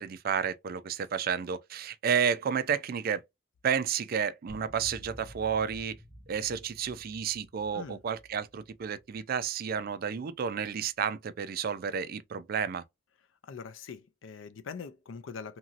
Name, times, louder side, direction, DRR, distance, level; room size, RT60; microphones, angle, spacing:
voice 1, 0.0-3.2 3.6-6.0 6.3-12.8, right 7 dB, 50° right, 0.4 m, -31 dB
sound 1, 4.5-9.8, equal, ahead, 0.5 m, -51 dB
voice 2, 13.4-15.6, left 5 dB, 80° left, 0.4 m, -43 dB
2.9 x 2.7 x 2.4 m
head